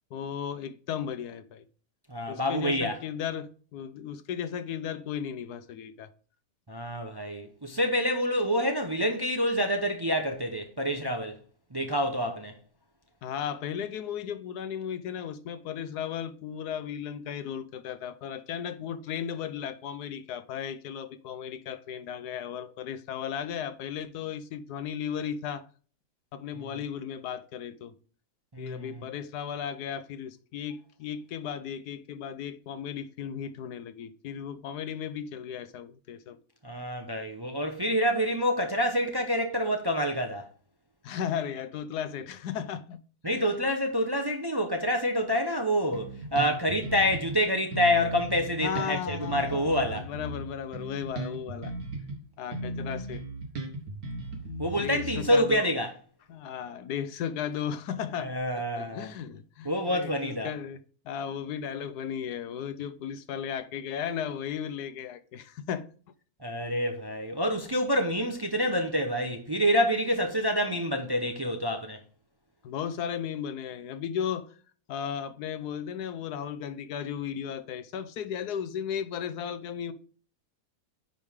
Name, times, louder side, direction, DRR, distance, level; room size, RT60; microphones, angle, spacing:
voice 1, 0.1-1.7 2.3-6.1 13.2-25.7 26.3-27.9 28.6-36.4 41.0-43.4 48.6-51.7 52.4-53.2 54.8-55.7 56.3-58.3 58.8-65.9 72.6-74.6 74.9-79.9, left 8 dB, 85° left, 1.3 m, -35 dB
voice 2, 2.1-3.0 6.7-11.4 11.7-12.5 26.5-26.7 28.5-28.9 36.6-40.5 43.2-50.1 54.6-55.9 58.2-59.1 59.6-60.5 66.4-72.0, equal, 25° right, 0.6 m, -27 dB
Bass guitar, 45.9-47.4 47.7-52.2 52.5-55.5, right 1 dB, 70° right, 2.2 m, -37 dB
9.6 x 4.8 x 3.5 m
omnidirectional pair, 1.6 m